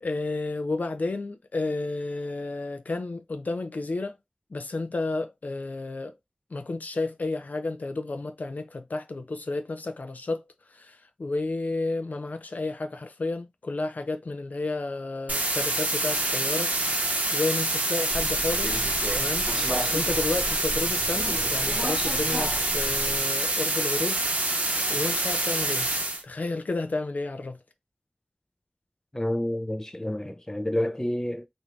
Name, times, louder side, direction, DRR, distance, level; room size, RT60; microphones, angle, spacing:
voice 1, 0.0-4.2 4.5-6.1 6.5-10.4 10.7-18.8 19.1-24.2 24.6-25.9 26.2-27.6, left 3 dB, 85° left, 0.4 m, -32 dB
sound 1, 15.3-26.2, right 2 dB, 75° right, 0.7 m, -26 dB
Subway metro underground, 18.1-23.2, equal, 15° right, 0.9 m, -34 dB
voice 2, 29.1-31.5, left 1 dB, 20° left, 0.4 m, -29 dB
2.6 x 2.3 x 3.0 m
wide cardioid pair, 50°, 3 cm